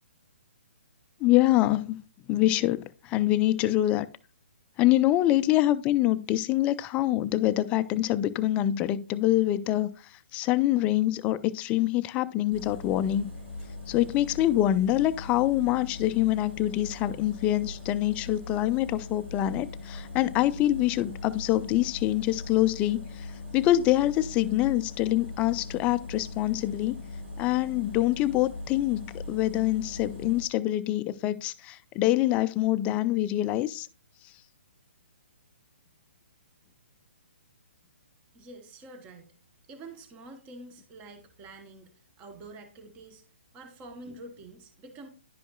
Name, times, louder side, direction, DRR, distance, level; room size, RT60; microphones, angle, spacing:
voice 1, 1.2-2.0 2.3-4.1 4.8-13.3 13.9-23.3 23.5-27.0 27.4-33.9, left 14 dB, 20° left, 0.3 m, -25 dB
sound 1, 12.5-30.4, left 3 dB, 80° right, 3.3 m, -41 dB
voice 2, 38.3-39.3 39.7-41.9 42.2-43.2 43.5-45.1, right 2 dB, 20° right, 0.9 m, -47 dB
10.5 x 5.3 x 2.3 m
hypercardioid pair, 145°, 6 cm